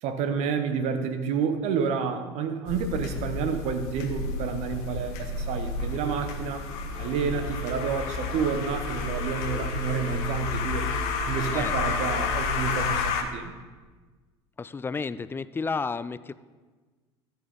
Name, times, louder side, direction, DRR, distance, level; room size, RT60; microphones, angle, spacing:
voice 1, 0.0-6.7 7.0-10.8 11.3-13.5, right 6 dB, 50° right, 7 dB, 1.1 m, -29 dB
sound 1, 2.7-13.2, left 4 dB, 55° left, 1.1 m, -30 dB
sound 2, 6.9-12.8, right 1 dB, 35° right, 3.6 m, -43 dB
voice 2, 11.5-12.0 14.6-16.3, left 4 dB, 15° left, 15 dB, 0.4 m, -32 dB
13.0 x 6.9 x 4.1 m, 1.3 s
figure-of-eight pair, 70°, 14 cm